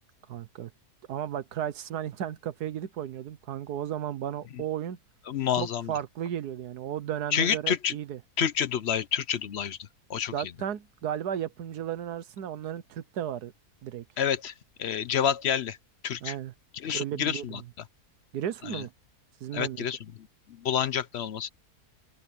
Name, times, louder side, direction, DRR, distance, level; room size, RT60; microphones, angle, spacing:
voice 1, 0.3-0.7 1.1-5.0 5.5-8.2 10.3-13.5 13.8-14.0 16.2-16.5 16.9-17.6 18.3-18.9 19.4-19.8, right 10 dB, 85° right, 1.4 m, -34 dB
voice 2, 5.3-5.9 7.3-7.9 8.4-9.8 10.1-10.3 14.2-14.5 14.8-15.8 16.0-16.3 16.8-17.6 18.7-18.8 19.5-20.0 20.6-21.5, left 8 dB, 60° left, 0.8 m, -28 dB
open air
omnidirectional pair, 1.6 m